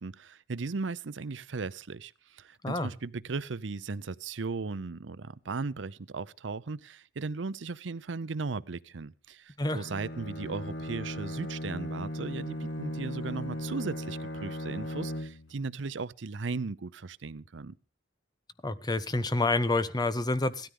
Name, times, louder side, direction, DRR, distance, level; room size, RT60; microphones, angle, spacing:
voice 1, 0.0-17.7, right 4 dB, 80° right, 0.6 m, -37 dB
Bowed string instrument, 9.6-15.6, equal, 75° left, 1.5 m, -37 dB
voice 2, 18.6-20.7, left 2 dB, 20° left, 0.8 m, -28 dB
17.5 x 13.0 x 3.7 m
head